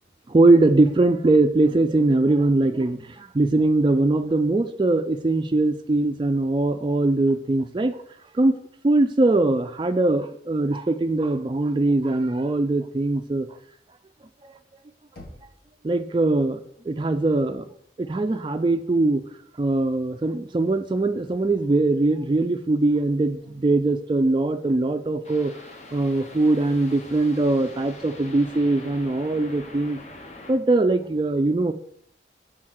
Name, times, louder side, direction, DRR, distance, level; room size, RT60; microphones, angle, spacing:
voice 1, 0.3-8.0 8.3-8.6 8.8-13.5 14.4-14.5 15.8-16.6 16.9-17.7 18.0-19.2 19.6-25.5 25.9-30.0 30.5-31.7, right 2 dB, 25° right, 7 dB, 0.3 m, -21 dB
Knock, 15.2-16.1, left 1 dB, 70° left, 1.7 m, -46 dB
sound 1, 25.2-30.5, left 2 dB, 40° left, 0.9 m, -43 dB
5.9 x 4.3 x 6.4 m, 0.69 s
head